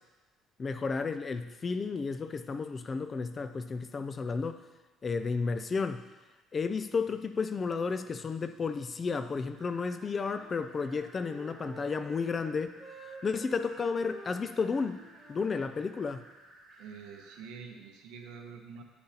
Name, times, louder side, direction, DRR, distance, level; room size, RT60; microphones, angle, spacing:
voice 1, 0.6-4.6 5.0-6.0 6.5-12.7 13.2-15.0 15.3-16.2, left 4 dB, 25° left, 10 dB, 0.3 m, -32 dB
sound 1, 9.5-17.4, right 2 dB, 40° right, 1.4 m, -57 dB
Wind instrument woodwind instrument, 9.6-12.5 12.8-16.1, right 2 dB, 5° left, 1.3 m, -51 dB
voice 2, 16.8-18.8, right 6 dB, 75° right, 4 dB, 0.8 m, -46 dB
9.5 x 6.6 x 2.8 m, 1.2 s
cardioid pair, 155°, 0 cm